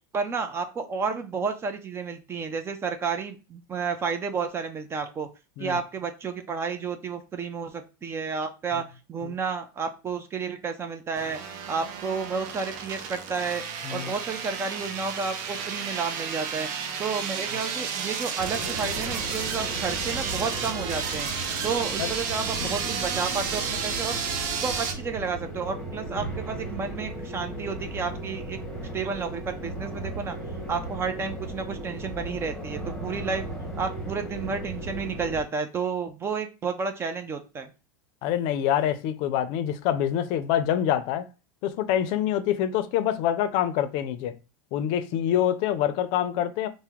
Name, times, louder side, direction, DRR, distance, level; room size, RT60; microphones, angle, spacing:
voice 1, 0.1-5.3 5.6-11.4 11.7-13.6 13.9-16.7 17.0-21.3 21.6-24.2 24.6-28.6 28.9-30.4 30.7-33.4 33.8-37.7, right 5 dB, 25° right, 0.4 m, -31 dB
sound 1, 11.1-24.9, right 6 dB, 65° right, 0.7 m, -32 dB
sound 2, 18.4-35.4, right 1 dB, 5° left, 1.2 m, -36 dB
voice 2, 38.2-41.3 41.6-44.3 44.7-46.7, left 10 dB, 55° left, 0.5 m, -26 dB
2.8 x 2.1 x 3.5 m
supercardioid pair, 120°, 10 cm